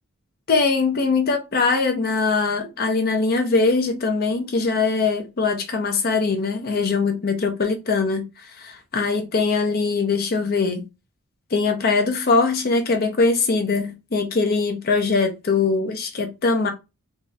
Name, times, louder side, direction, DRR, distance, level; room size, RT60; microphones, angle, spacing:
voice 1, 0.5-8.3 8.6-10.8 11.5-16.7, left 4 dB, 45° left, 0.6 m, -21 dB
3.5 x 3.1 x 2.7 m
head